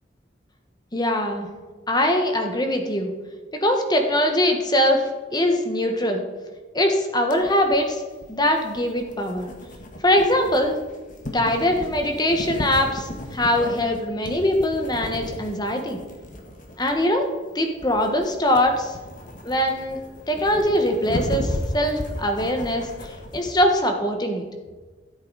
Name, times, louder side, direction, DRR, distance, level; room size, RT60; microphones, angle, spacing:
voice 1, 0.9-1.5 1.9-3.1 3.6-6.2 6.7-8.0 8.3-9.5 10.0-10.7 11.3-16.0 16.8-17.3 17.5-18.9 19.4-20.0 20.3-24.4, left 1 dB, 20° left, 4 dB, 1.4 m, -22 dB
sound 1, 7.3-23.6, left 1 dB, 45° left, 1.5 m, -35 dB
13.5 x 8.0 x 4.1 m, 1.3 s
head